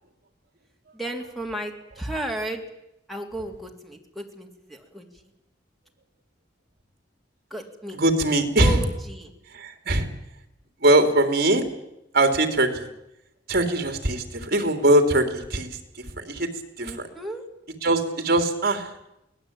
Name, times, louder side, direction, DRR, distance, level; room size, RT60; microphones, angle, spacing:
voice 1, 0.9-2.6 3.1-5.2 7.5-9.3 16.8-17.4, right 1 dB, ahead, 3 dB, 3.1 m, -34 dB
voice 2, 8.0-8.8 9.5-10.1 10.8-11.6 12.1-12.9 13.5-15.7 16.0-16.5 16.8-17.1 17.8-18.9, right 1 dB, 55° right, 7 dB, 3.3 m, -21 dB
23.5 x 18.5 x 8.8 m, 0.86 s
head